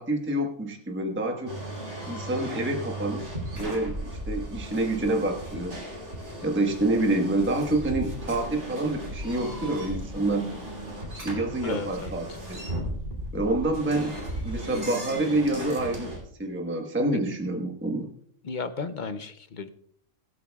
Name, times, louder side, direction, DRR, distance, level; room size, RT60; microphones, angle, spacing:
voice 1, 0.0-1.5 2.1-3.2 3.5-5.7 6.4-10.5 11.2-12.6 13.3-14.1 14.4-18.1, right 2 dB, 10° right, 2 dB, 1.2 m, -27 dB
sound 1, 1.5-16.2, right 1 dB, 60° right, 3.4 m, -36 dB
voice 2, 11.6-12.1 18.4-19.7, left 4 dB, 50° left, 10 dB, 0.6 m, -34 dB
22.5 x 8.5 x 2.3 m, 0.64 s
omnidirectional pair, 1.4 m